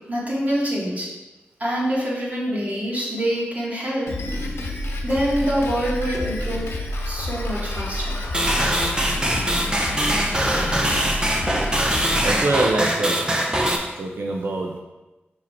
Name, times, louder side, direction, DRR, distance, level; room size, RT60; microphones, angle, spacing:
voice 1, 0.1-1.1 1.6-4.2 5.0-6.7 7.0-8.2, equal, 40° right, -5 dB, 2.3 m, -26 dB
Drum kit, 4.1-12.4, left 1 dB, 85° left, 0.9 m, -29 dB
sound 1, 8.3-13.8, right 1 dB, 20° right, 0.9 m, -22 dB
voice 2, 12.2-13.6 13.9-14.8, right 2 dB, 75° right, 1 dB, 0.7 m, -25 dB
5.7 x 4.9 x 4.4 m, 1.1 s
wide cardioid pair, 65°, 4 cm